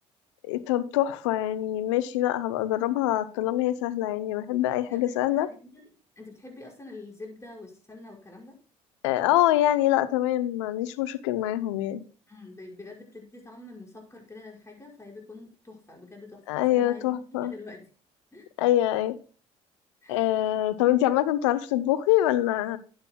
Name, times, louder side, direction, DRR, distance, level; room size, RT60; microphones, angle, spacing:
voice 1, 0.4-5.5 9.0-12.0 16.5-17.5 18.6-19.1 20.1-22.8, left 14 dB, 90° left, 0.6 m, -25 dB
voice 2, 4.8-5.9 6.2-8.6 12.3-17.9 18.3-18.5 20.0-20.4, left 2 dB, 20° left, 5.7 m, -46 dB
13.0 x 8.9 x 2.2 m
hypercardioid pair, 65°, 15 cm